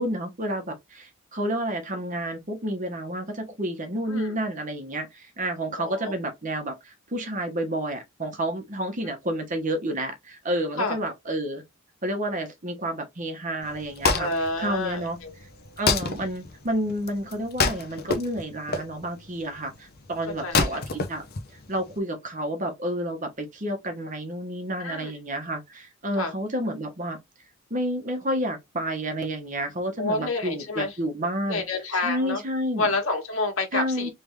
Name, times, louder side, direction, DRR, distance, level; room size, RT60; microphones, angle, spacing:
voice 1, 0.0-11.6 12.0-14.3 14.6-15.2 15.8-21.2 21.7-27.2 27.7-31.6 32.0-32.9 33.7-34.1, right 1 dB, 35° right, 1.1 m, -30 dB
voice 2, 5.8-6.1 10.8-11.0 14.2-15.3 20.4-20.8 24.8-25.1 26.2-26.3 30.0-30.9 31.4-32.4 32.8-34.1, left 3 dB, 75° left, 1.6 m, -29 dB
Wood, 13.6-22.0, left 4 dB, 45° left, 0.7 m, -29 dB
3.5 x 3.3 x 3.1 m
head